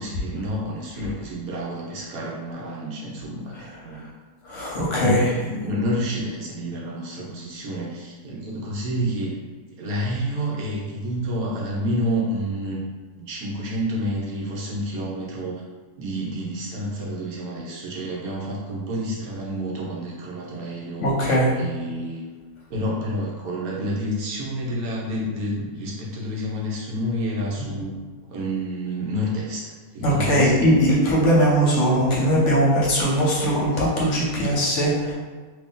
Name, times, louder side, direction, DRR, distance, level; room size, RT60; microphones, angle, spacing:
voice 1, 0.0-4.1 4.9-9.3 9.7-12.8 13.2-15.6 16.0-21.1 21.5-22.3 22.7-28.0 28.2-30.7 33.7-33.8, equal, 75° right, -4 dB, 1.2 m, -29 dB
voice 2, 4.4-5.2 21.0-21.5 30.0-35.1, equal, 60° left, -4 dB, 1.0 m, -20 dB
2.9 x 2.7 x 3.7 m, 1.4 s
omnidirectional pair, 1.6 m